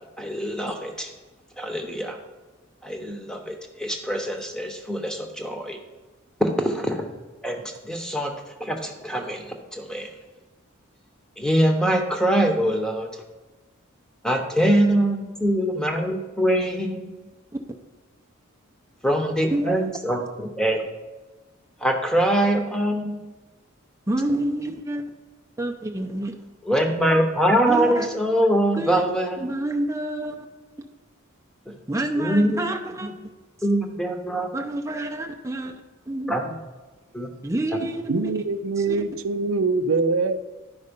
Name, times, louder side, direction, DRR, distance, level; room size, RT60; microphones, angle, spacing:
voice 1, 0.2-1.1 1.6-2.2 2.8-5.8 6.4-7.0 7.4-8.3 8.6-10.1 11.4-13.1 14.2-17.1 19.0-20.8 21.8-23.2 26.6-29.4 31.7-31.8 32.2-32.6 33.0-33.1 33.6-34.5 36.3-36.4 37.1-37.3, right 1 dB, 5° left, 3 dB, 0.9 m, -23 dB
voice 2, 19.5-19.9 24.1-25.0 25.6-26.3 27.7-28.1 28.8-29.0 29.4-30.5 31.9-33.1 34.5-36.3 37.4-38.3 38.8-39.0, right 1 dB, 15° right, 2 dB, 0.6 m, -28 dB
voice 3, 38.1-40.4, right 3 dB, 70° right, 10 dB, 0.5 m, -24 dB
11.5 x 5.3 x 5.3 m, 1.2 s
head